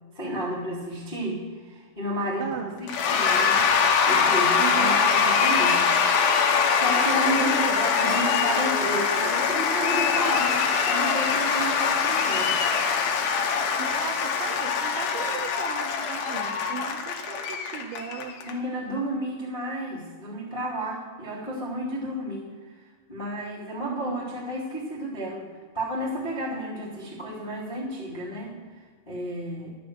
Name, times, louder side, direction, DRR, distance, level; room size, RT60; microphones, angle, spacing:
voice 1, 0.1-3.7 4.0-5.9 6.8-12.6 18.4-25.5 25.7-29.7, right 1 dB, 15° left, -8 dB, 1.6 m, -32 dB
voice 2, 2.4-2.8 4.6-5.1 7.4-7.9 13.8-18.3 23.8-24.2, right 6 dB, 90° right, 0 dB, 3.2 m, -36 dB
Cheering / Applause / Crowd, 2.9-18.5, left 6 dB, 75° left, 2.0 m, -23 dB
11.5 x 7.0 x 7.8 m, 1.5 s
omnidirectional pair, 5.1 m